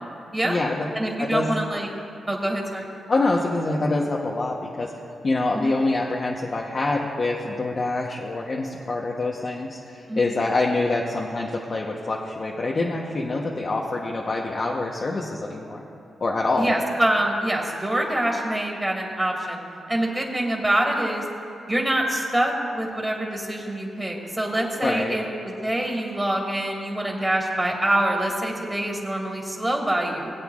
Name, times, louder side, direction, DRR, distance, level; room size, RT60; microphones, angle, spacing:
voice 1, 0.4-0.9 1.2-1.5 3.1-4.9 5.2-15.8 16.2-16.7 24.8-25.2, left 2 dB, 50° left, -2 dB, 1.0 m, -25 dB
voice 2, 0.9-1.9 2.3-2.9 5.5-5.7 10.1-10.3 16.6-19.6 19.9-21.2 21.7-30.3, right 1 dB, 15° right, 0 dB, 2.5 m, -25 dB
20.0 x 8.3 x 2.5 m, 2.8 s
supercardioid pair, 50°, 0 cm